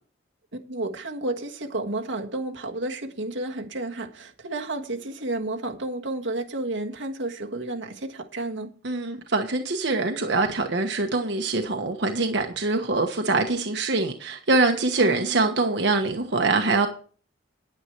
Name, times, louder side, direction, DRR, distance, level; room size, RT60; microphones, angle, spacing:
voice 1, 0.7-8.8 15.0-15.4, right 2 dB, 90° right, 1.5 m, -31 dB
voice 2, 8.8-16.9, right 3 dB, 70° right, 1.2 m, -24 dB
10.0 x 9.7 x 4.6 m
head